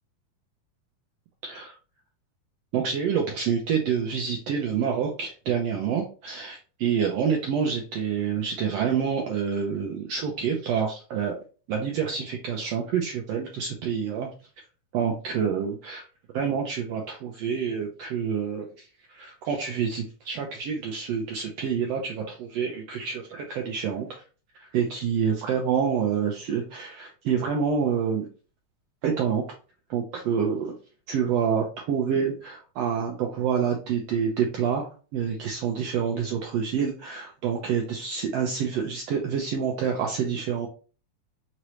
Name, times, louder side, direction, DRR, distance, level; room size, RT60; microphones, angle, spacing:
voice 1, 1.4-1.7 2.7-11.4 11.7-14.3 14.9-16.0 16.3-24.1 24.5-28.3 29.0-29.4 29.9-30.7 31.1-40.7, right 7 dB, 85° right, 1 dB, 1.4 m, -27 dB
5.0 x 3.1 x 2.9 m, 0.36 s
omnidirectional pair, 3.7 m